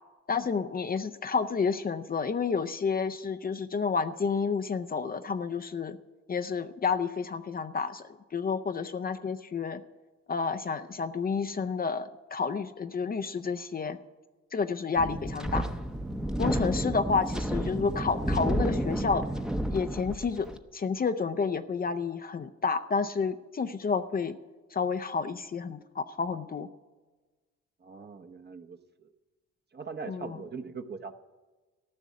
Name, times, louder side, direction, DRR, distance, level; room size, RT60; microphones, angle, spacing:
voice 1, 0.3-6.0 6.3-9.8 10.3-14.0 14.5-15.6 16.4-19.2 19.7-24.4 24.7-26.7 30.1-30.4, left 5 dB, 30° left, 8 dB, 0.6 m, -30 dB
Wind, 15.0-20.6, right 1 dB, ahead, 0.8 m, -31 dB
voice 2, 27.8-29.1 29.7-31.1, right 5 dB, 35° right, 7 dB, 0.9 m, -41 dB
14.0 x 6.2 x 9.4 m, 1.3 s
cardioid pair, 90°, 30 cm